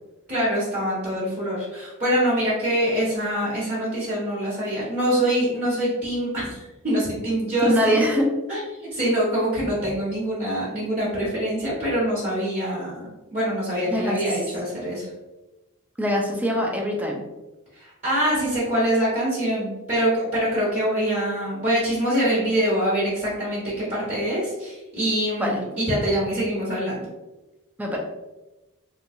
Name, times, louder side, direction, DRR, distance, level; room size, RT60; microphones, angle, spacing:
voice 1, 0.3-8.0 8.5-15.1 17.7-27.0, equal, 35° right, -9 dB, 1.2 m, -24 dB
voice 2, 7.6-8.2 13.9-14.2 16.0-17.2 25.4-25.6 27.8-28.0, equal, 5° right, 0 dB, 0.5 m, -23 dB
3.3 x 3.1 x 2.6 m, 1.1 s
head